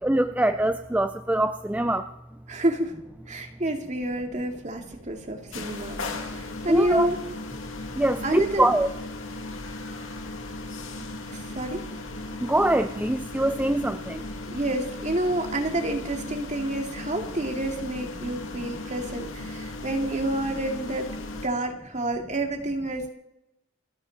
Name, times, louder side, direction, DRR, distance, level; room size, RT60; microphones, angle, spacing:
voice 1, 0.0-2.0 6.7-7.1 8.0-8.9 12.4-14.2, right 1 dB, 10° right, 9 dB, 0.4 m, -23 dB
voice 2, 2.5-2.9 3.3-6.0 6.3-7.2 8.2-8.7 11.3-11.8 14.5-21.1 21.3-23.1, right 1 dB, 35° right, 3 dB, 2.3 m, -28 dB
sound 1, 5.5-21.5, left 2 dB, 75° left, 2.3 m, -37 dB
29.0 x 11.0 x 4.1 m, 0.88 s
head